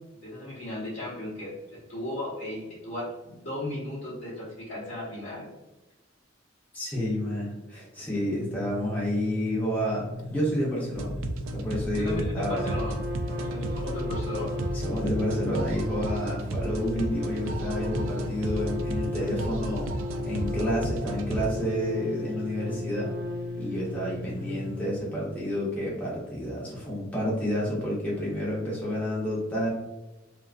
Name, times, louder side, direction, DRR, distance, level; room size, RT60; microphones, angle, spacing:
voice 1, 0.2-5.5 12.0-13.0 13.3-14.6, left 1 dB, 55° left, -9 dB, 0.7 m, -36 dB
voice 2, 6.7-11.1 11.5-12.7 14.7-19.9 20.2-23.1 23.6-29.7, equal, 10° left, -6 dB, 0.5 m, -30 dB
sound 1, 8.4-24.9, left 2 dB, 75° left, 0.3 m, -37 dB
sound 2, 10.9-21.5, right 2 dB, 70° right, 0.3 m, -34 dB
Trumpet, 12.4-24.6, left 1 dB, 55° right, 0.8 m, -36 dB
2.5 x 2.2 x 2.4 m, 1.0 s
head